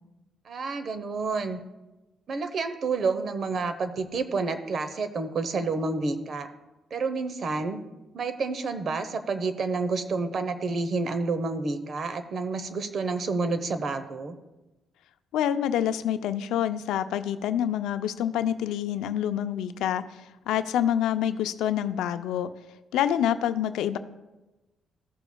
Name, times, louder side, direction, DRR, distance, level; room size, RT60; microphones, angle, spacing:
voice 1, 0.4-1.6 2.3-6.5 6.9-7.8 8.1-14.3, right 4 dB, 55° right, 10 dB, 0.9 m, -29 dB
voice 2, 15.3-20.0 20.5-22.5 22.9-24.0, left 10 dB, 85° left, 11 dB, 0.5 m, -27 dB
15.5 x 7.0 x 2.3 m, 1.1 s
cardioid pair, 90°, 0 cm